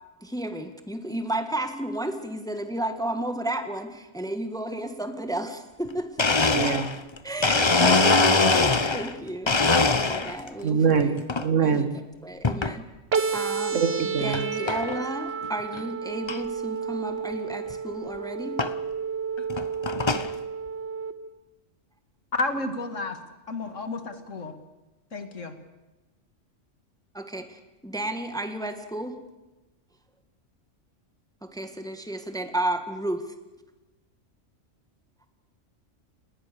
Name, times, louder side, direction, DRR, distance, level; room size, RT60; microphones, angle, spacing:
voice 1, 0.2-6.1 7.2-9.8 10.1-11.2 11.6-11.9 12.2-12.8 13.3-13.8 14.2-18.5 27.1-29.2 31.4-33.2, right 1 dB, 5° left, 8 dB, 1.6 m, -32 dB
Domestic sounds home sounds, 5.8-5.9 6.2-9.1 9.5-10.5 11.0-11.5 12.4-12.8 13.4-13.5 14.3-14.4 14.7-15.0 15.4-15.5 15.7-15.8 16.3-16.4 17.7-17.8 18.6-18.7 19.4-20.3, left 3 dB, 25° left, 0.9 m, -22 dB
voice 2, 6.5-7.0 10.6-11.9 13.7-14.5, right 6 dB, 80° right, 10 dB, 2.0 m, -24 dB
sound 1, 13.1-21.1, right 6 dB, 55° right, 1.5 m, -31 dB
voice 3, 22.3-23.2 23.5-24.5 25.1-25.5, left 3 dB, 85° left, 8 dB, 2.5 m, -31 dB
29.0 x 20.0 x 6.9 m, 1.1 s
omnidirectional pair, 1.3 m